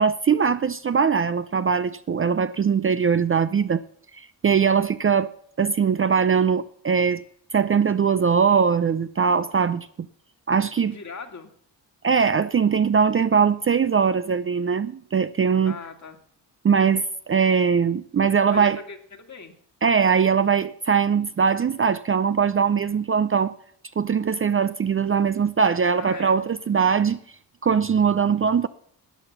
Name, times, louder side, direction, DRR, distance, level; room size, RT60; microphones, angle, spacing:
voice 1, 0.0-3.8 4.2-5.3 5.6-7.2 7.5-9.9 10.5-11.0 12.0-15.8 16.6-18.8 19.8-23.5 24.0-27.2 27.6-28.7, right 6 dB, 30° right, 0.5 m, -21 dB
voice 2, 10.8-11.5 15.6-16.2 18.5-19.6 26.0-26.4, left 5 dB, 40° left, 2.2 m, -39 dB
13.5 x 9.0 x 5.6 m
cardioid pair, 65°, 41 cm